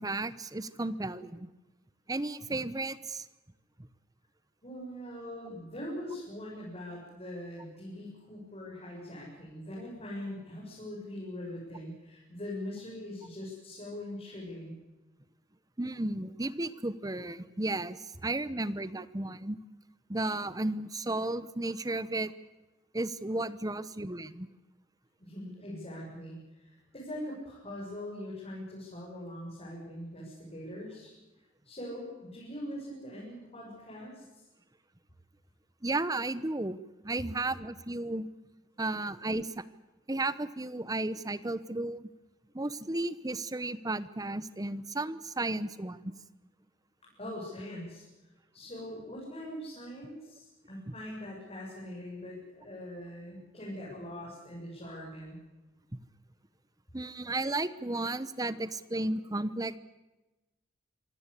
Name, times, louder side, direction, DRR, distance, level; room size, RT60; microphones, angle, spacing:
voice 1, 0.0-1.5 2.1-3.2 15.8-19.6 20.1-22.3 22.9-24.5 35.8-36.8 37.0-38.3 38.8-39.6 40.1-42.1 42.5-46.0 50.9-51.0 55.9-56.0 56.9-59.8, right 2 dB, 20° right, 16 dB, 0.9 m, -33 dB
voice 2, 4.6-14.8 25.2-31.1 31.6-34.4 47.2-48.0 48.5-55.4, left 1 dB, 30° left, -5 dB, 7.5 m, -42 dB
26.0 x 17.5 x 8.4 m, 1.1 s
head